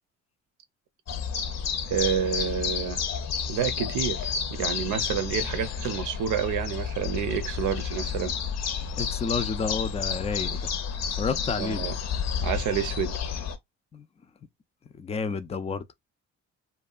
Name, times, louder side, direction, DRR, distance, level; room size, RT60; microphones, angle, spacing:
sound 1, 1.1-13.6, left 7 dB, 60° left, 0.6 m, -31 dB
voice 1, 1.9-3.0 3.5-8.4 11.6-12.0 12.4-13.2, right 8 dB, 80° right, 0.7 m, -29 dB
voice 2, 9.0-10.7 11.1-11.9 13.9-14.1 15.0-15.8, left 5 dB, 20° left, 0.4 m, -30 dB
2.7 x 2.2 x 2.3 m
cardioid pair, 90°, 30 cm